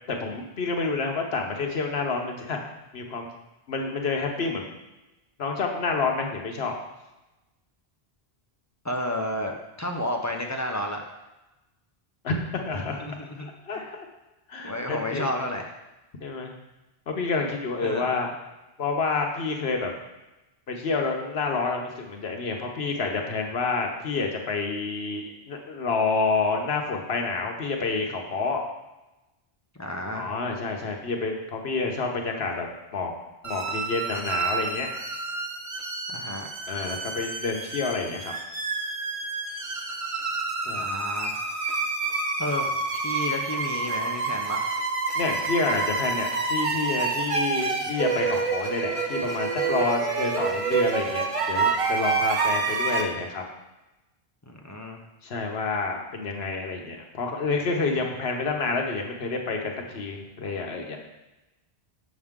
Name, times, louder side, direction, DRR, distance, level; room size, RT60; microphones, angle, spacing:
voice 1, 0.1-2.6 2.9-3.3 3.7-4.7 5.4-6.7 12.2-13.0 13.4-14.1 14.5-15.3 16.2-16.5 17.1-18.3 18.8-19.9 20.7-28.6 30.1-32.7 32.9-33.1 33.4-34.9 36.7-38.3 40.6-40.9 45.1-53.4 55.2-61.0, left 4 dB, 80° left, 2 dB, 1.2 m, -28 dB
voice 2, 8.8-11.0 12.7-13.9 14.6-15.7 17.8-18.0 29.8-30.3 36.1-36.5 40.8-41.3 42.4-42.7 42.9-44.7 54.5-55.0, left 1 dB, 20° left, 1 dB, 0.7 m, -31 dB
sound 1, 33.4-53.0, right 4 dB, 40° right, 0.7 m, -28 dB
6.7 x 6.3 x 3.6 m, 1.0 s
omnidirectional pair, 1.0 m